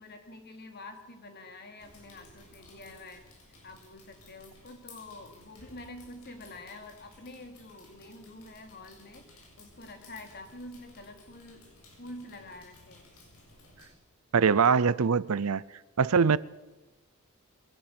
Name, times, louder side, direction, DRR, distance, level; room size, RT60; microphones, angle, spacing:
voice 1, 0.0-3.3 3.6-11.7 12.0-13.1, left 2 dB, 50° left, 3.1 m, -47 dB
sound 1, 1.8-13.9, left 2 dB, 80° left, 6.9 m, -56 dB
voice 2, 14.3-15.6 16.0-16.4, right 6 dB, 70° right, 0.6 m, -23 dB
23.0 x 17.5 x 6.9 m
head